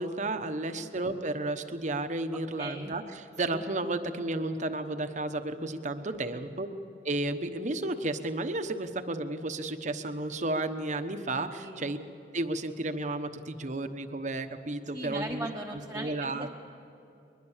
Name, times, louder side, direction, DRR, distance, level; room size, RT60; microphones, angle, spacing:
voice 1, 0.0-6.7 7.0-12.0 12.3-15.5 15.9-16.5, right 2 dB, 45° right, 8 dB, 1.1 m, -32 dB
voice 2, 2.6-2.9 3.5-3.6 6.1-6.5 11.5-11.9 14.9-16.5, right 1 dB, 10° right, -3 dB, 1.1 m, -39 dB
22.0 x 21.0 x 7.3 m, 2.7 s
head